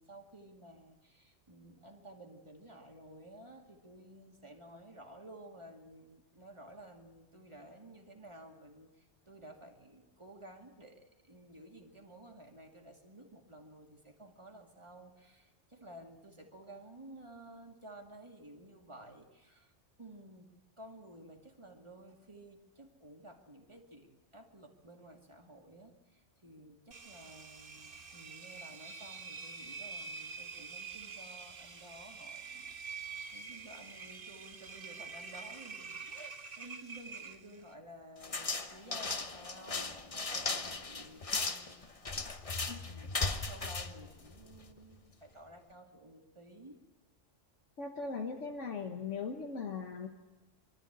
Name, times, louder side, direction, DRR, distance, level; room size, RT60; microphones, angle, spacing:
voice 1, 0.0-19.7 20.0-20.5 20.8-41.8 42.8-46.8, right 1 dB, 25° right, 1 dB, 2.4 m, -54 dB
Engine, 26.9-37.7, right 5 dB, 50° right, 1.3 m, -46 dB
sound 1, 38.2-44.8, left 3 dB, 30° left, 1.0 m, -37 dB
voice 2, 47.8-50.1, left 5 dB, 75° left, 2 dB, 1.6 m, -39 dB
24.5 x 13.0 x 8.1 m, 1.3 s
omnidirectional pair, 1.3 m